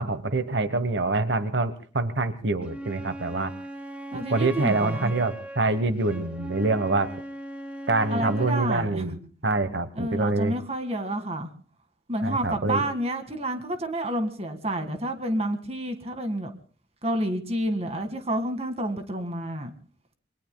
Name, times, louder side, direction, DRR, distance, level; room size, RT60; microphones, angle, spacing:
voice 1, 0.0-3.5 4.1-7.1 7.9-10.5 12.2-12.8, right 3 dB, 80° right, 11 dB, 1.1 m, -26 dB
Wind instrument woodwind instrument, 2.6-8.6, right 1 dB, 5° right, 1.1 m, -39 dB
voice 2, 4.1-5.1 8.1-9.1 10.0-11.5 12.1-16.5 17.0-19.7, right 1 dB, 35° right, 7 dB, 1.9 m, -29 dB
27.5 x 23.5 x 2.3 m, 0.41 s
head